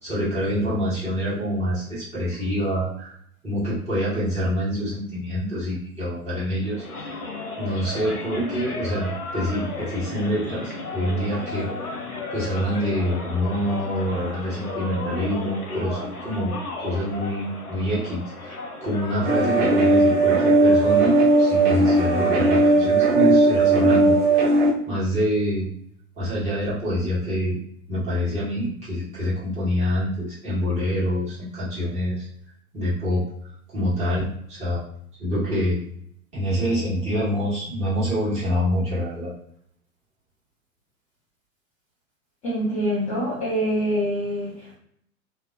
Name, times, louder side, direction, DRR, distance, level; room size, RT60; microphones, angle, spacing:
voice 1, 0.0-3.1 3.4-7.0 7.6-11.7 12.3-24.6 24.9-25.7 26.2-27.6 27.9-32.3 32.7-33.2 33.7-34.8 35.2-35.8 36.3-39.3, equal, 15° right, -10 dB, 1.4 m, -26 dB
sound 1, 6.6-22.8, left 3 dB, 85° left, 0.8 m, -35 dB
sound 2, 19.2-24.7, right 2 dB, 35° right, 0.8 m, -17 dB
voice 2, 42.4-44.7, equal, 15° left, -8 dB, 0.5 m, -25 dB
2.9 x 2.1 x 2.4 m, 0.68 s
figure-of-eight pair, 105°, 44 cm